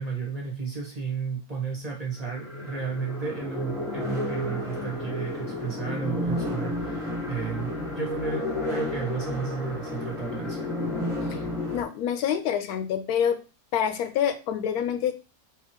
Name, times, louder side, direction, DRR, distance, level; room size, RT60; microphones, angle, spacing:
voice 1, 0.0-10.6, right 5 dB, 30° right, -1 dB, 0.9 m, -33 dB
sound 1, 1.0-1.1 2.2-11.8, left 1 dB, ahead, 1.1 m, -32 dB
voice 2, 11.7-13.4 13.7-15.1, left 8 dB, 90° left, 10 dB, 1.1 m, -26 dB
3.7 x 3.0 x 2.9 m, 0.33 s
omnidirectional pair, 1.5 m